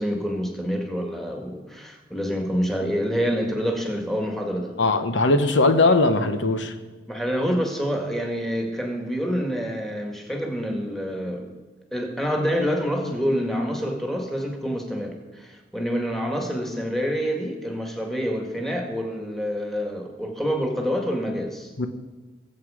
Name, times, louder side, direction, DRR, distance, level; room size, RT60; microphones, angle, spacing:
voice 1, 0.0-4.7 7.1-11.5 11.9-21.7, equal, ahead, 2 dB, 1.9 m, -27 dB
voice 2, 4.8-6.7 21.8-21.9, left 2 dB, 85° left, 8 dB, 1.0 m, -19 dB
21.0 x 7.9 x 5.0 m, 1.2 s
head